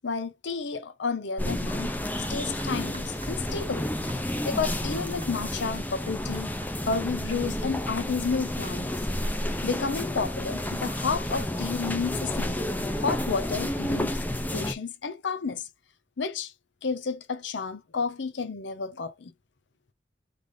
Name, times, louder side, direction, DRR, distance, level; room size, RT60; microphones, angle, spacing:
voice 1, 0.0-1.9 2.3-3.9 4.2-6.5 6.9-8.9 9.6-12.6 12.9-14.1 14.5-15.7 16.2-16.5 16.8-19.3, left 5 dB, 75° left, 0.7 m, -31 dB
sound 1, 1.4-14.7, left 1 dB, 10° left, 0.5 m, -31 dB
sound 2, 1.9-9.4, right 5 dB, 35° right, 0.9 m, -52 dB
3.4 x 3.3 x 3.9 m
head